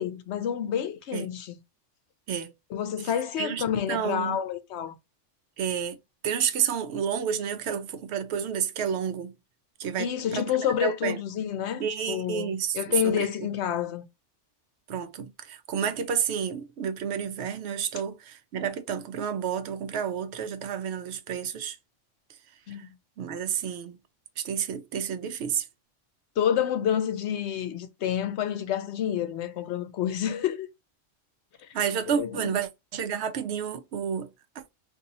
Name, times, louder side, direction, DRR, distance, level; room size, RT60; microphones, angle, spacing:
voice 1, 0.0-1.6 2.7-4.9 10.0-14.0 22.7-22.9 26.4-30.7 32.0-32.5, left 9 dB, 70° left, 0.8 m, -29 dB
voice 2, 3.4-4.4 5.6-6.0 6.2-9.3 9.8-11.2 11.8-12.8 13.0-13.3 14.9-21.8 23.2-24.0 24.4-25.7 31.7-34.3, right 8 dB, 70° right, 0.8 m, -30 dB
2.7 x 2.6 x 4.0 m
omnidirectional pair, 1.3 m